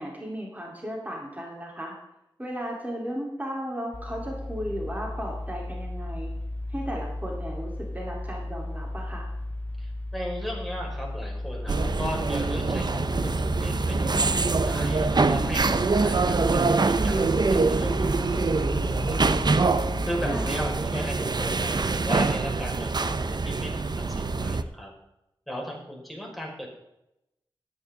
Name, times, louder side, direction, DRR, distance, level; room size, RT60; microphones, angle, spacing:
voice 1, 0.0-1.9 2.4-6.3 6.7-9.3 20.3-20.5, equal, 20° right, -2 dB, 4.0 m, -35 dB
sound 1, 3.9-20.8, left 1 dB, 15° left, 0.6 m, -35 dB
voice 2, 9.8-13.3 13.6-19.4 20.0-23.8 24.1-24.9 25.5-26.7, equal, ahead, -2 dB, 5.7 m, -37 dB
sound 2, 11.7-24.6, right 3 dB, 50° right, 0.8 m, -24 dB
13.5 x 13.0 x 4.0 m, 0.86 s
cardioid pair, 55°, 9 cm